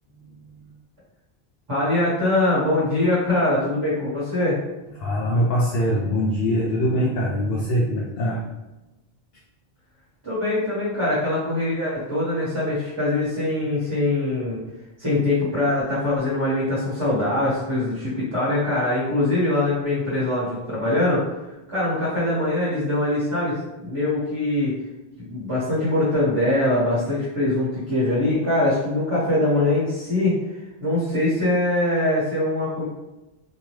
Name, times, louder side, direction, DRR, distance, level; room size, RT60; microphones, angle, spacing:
voice 1, 1.7-4.6 10.2-14.6 15.0-21.2 21.7-24.7 25.3-32.9, left 1 dB, 25° right, -9 dB, 0.9 m, -23 dB
voice 2, 5.0-8.4, equal, 70° left, -5 dB, 0.8 m, -22 dB
2.7 x 2.2 x 3.1 m, 1.0 s
omnidirectional pair, 1.1 m